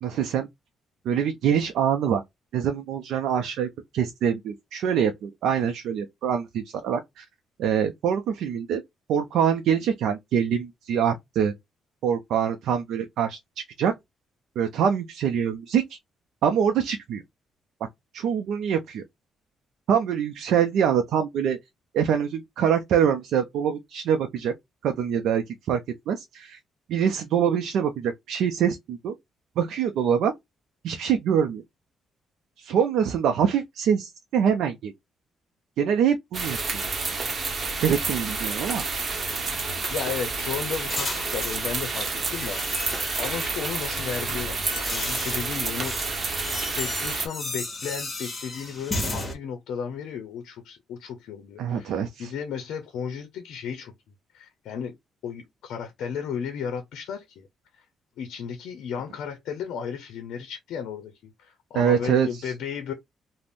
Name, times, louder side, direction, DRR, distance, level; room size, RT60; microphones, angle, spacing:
voice 1, 0.0-0.5 1.0-2.2 2.5-7.2 7.6-8.8 9.1-11.5 12.0-13.9 14.6-16.0 16.4-17.2 18.1-19.0 19.9-21.6 21.9-24.5 24.8-25.8 26.1-26.6 26.9-29.1 29.6-30.3 30.8-31.6 32.6-34.9 35.8-36.8 37.8-38.8 51.6-52.3 61.7-62.5, right 8 dB, 80° right, 0.4 m, -24 dB
sound 1, 36.3-47.3, right 3 dB, 40° right, 0.8 m, -29 dB
sound 2, 39.3-41.7 42.2-43.4 44.2-49.3, left 2 dB, 30° left, 1.0 m, -34 dB
voice 2, 39.9-42.9 43.2-46.0 46.7-53.9 54.3-54.9 55.2-57.5 57.8-57.9 58.2-62.9, left 7 dB, 80° left, 0.5 m, -34 dB
2.5 x 2.0 x 3.3 m
cardioid pair, 90°, 0 cm